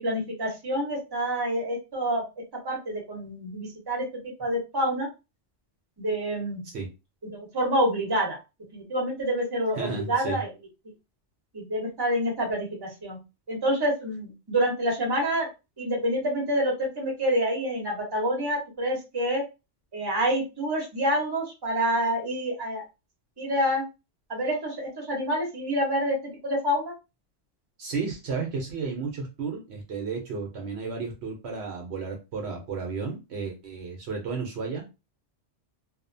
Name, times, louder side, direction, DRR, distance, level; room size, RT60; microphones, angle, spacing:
voice 1, 0.0-2.2 2.6-5.1 6.0-6.6 7.3-8.4 8.7-10.5 11.5-13.2 13.5-15.5 15.8-19.4 19.9-22.8 23.4-23.8 24.3-26.2 26.4-26.9, equal, 20° right, -1 dB, 0.8 m, -27 dB
voice 2, 9.7-10.4 27.8-34.9, right 4 dB, 65° right, 2 dB, 0.9 m, -33 dB
2.7 x 2.1 x 2.6 m, 0.26 s
omnidirectional pair, 1.2 m